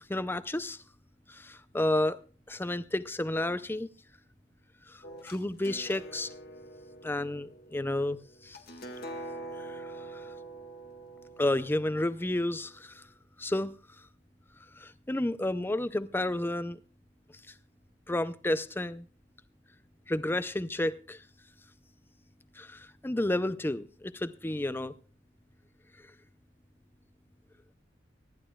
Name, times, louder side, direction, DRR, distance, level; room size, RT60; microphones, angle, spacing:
voice 1, 0.1-0.8 1.3-2.2 2.5-3.9 4.9-5.0 5.2-6.3 7.0-8.6 9.6-10.2 11.4-13.0 13.4-13.7 14.8-16.8 18.1-19.0 20.1-21.2 22.6-24.9, left 1 dB, 10° left, 0.5 m, -31 dB
sound 1, 5.0-12.7, right 1 dB, 55° left, 1.9 m, -45 dB
25.0 x 11.0 x 2.3 m
head